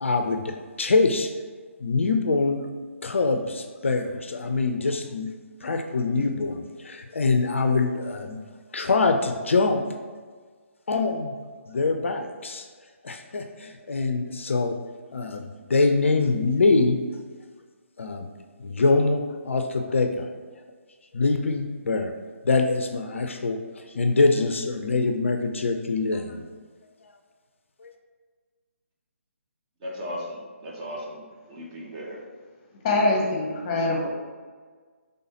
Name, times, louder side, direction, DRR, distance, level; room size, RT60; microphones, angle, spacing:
voice 1, 0.0-1.3 1.8-2.7 3.0-5.3 5.6-8.4 8.7-9.8 10.9-11.3 11.7-12.7 13.0-14.8 15.1-17.0 18.0-18.3 18.6-20.3 21.1-22.1 22.4-26.5 27.8-27.9, left 3 dB, 60° left, 6 dB, 0.4 m, -24 dB
voice 2, 29.8-31.2 31.5-32.2, equal, 25° right, -3 dB, 0.8 m, -36 dB
voice 3, 32.8-34.1, left 2 dB, 25° left, -1 dB, 0.8 m, -23 dB
5.3 x 3.5 x 2.8 m, 1.5 s
figure-of-eight pair, 140°, 8 cm